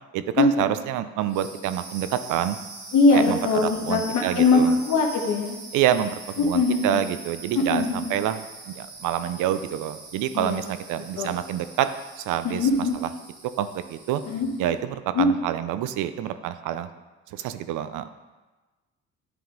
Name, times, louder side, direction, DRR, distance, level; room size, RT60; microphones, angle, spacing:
voice 1, 0.1-2.6 3.1-4.7 5.7-11.9 12.2-12.7 13.0-13.1 13.6-14.2 14.6-16.9 17.3-18.1, right 11 dB, 90° right, 12 dB, 0.5 m, -27 dB
sound 1, 1.2-14.7, right 2 dB, 70° right, 1.8 m, -43 dB
voice 2, 2.9-5.6 6.4-7.0 7.7-8.1 10.3-10.6 11.2-11.3 12.4-12.9 14.3-14.5 15.1-15.3, left 3 dB, 75° left, 1 dB, 1.2 m, -21 dB
9.5 x 3.7 x 3.8 m, 1.2 s
cardioid pair, 90°, 30 cm